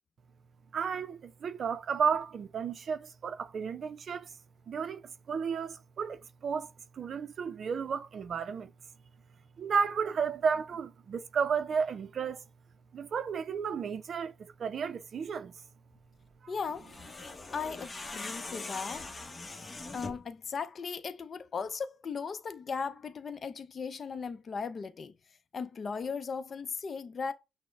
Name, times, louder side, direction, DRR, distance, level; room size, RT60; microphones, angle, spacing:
voice 1, 0.7-4.3 4.7-8.7 9.6-12.4 12.9-15.5 16.4-16.5, right 6 dB, 55° right, 0.4 m, -33 dB
voice 2, 16.5-16.9 17.5-19.1 19.9-25.1 25.5-27.3, left 5 dB, 45° left, 0.5 m, -37 dB
sound 1, 16.7-20.3, left 3 dB, 30° left, 0.8 m, -42 dB
6.1 x 2.1 x 3.3 m
cardioid pair, 75°, 0 cm